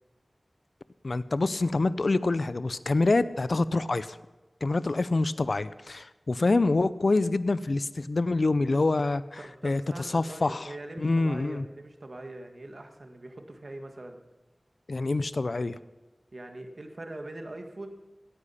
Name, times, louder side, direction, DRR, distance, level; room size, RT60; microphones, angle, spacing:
voice 1, 1.0-4.2 4.6-10.7 11.0-11.7 14.9-15.8, left 3 dB, 65° left, 15 dB, 0.4 m, -26 dB
voice 2, 9.4-14.2 16.3-17.9, right 2 dB, 60° right, 5 dB, 1.6 m, -42 dB
16.5 x 10.0 x 5.6 m, 1.1 s
wide cardioid pair, 65°, 0 cm